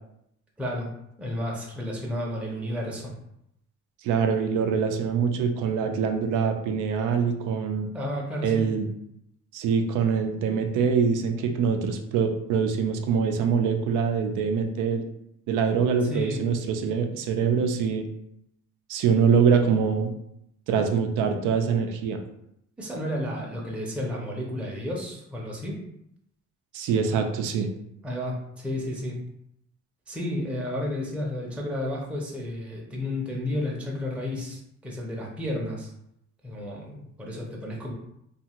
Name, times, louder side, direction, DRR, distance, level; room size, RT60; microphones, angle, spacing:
voice 1, 0.6-0.9 1.2-3.1 7.9-8.7 16.0-16.4 22.8-25.8 28.0-29.2 30.1-35.9 36.4-37.9, left 1 dB, 5° right, -3 dB, 0.6 m, -32 dB
voice 2, 4.0-7.9 8.4-8.9 9.5-15.0 15.5-18.0 18.9-20.1 20.7-22.2 26.7-27.7, right 6 dB, 85° right, 5 dB, 0.5 m, -24 dB
2.6 x 2.4 x 2.9 m, 0.78 s
cardioid pair, 90°, 30 cm